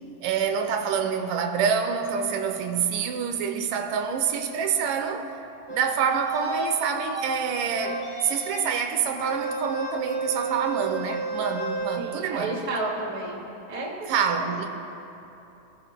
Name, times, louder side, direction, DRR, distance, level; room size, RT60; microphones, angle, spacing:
voice 1, 0.2-5.3 5.7-12.6 14.1-14.7, right 7 dB, 90° right, 2.4 m, -27 dB
sound 1, 5.7-6.7 7.1-7.3 7.7-8.7 9.1-12.0, right 3 dB, 5° left, 0.9 m, -32 dB
voice 2, 12.0-13.4 13.7-14.1 14.4-14.7, right 2 dB, 15° right, 1.4 m, -31 dB
27.0 x 14.0 x 2.2 m
omnidirectional pair, 3.7 m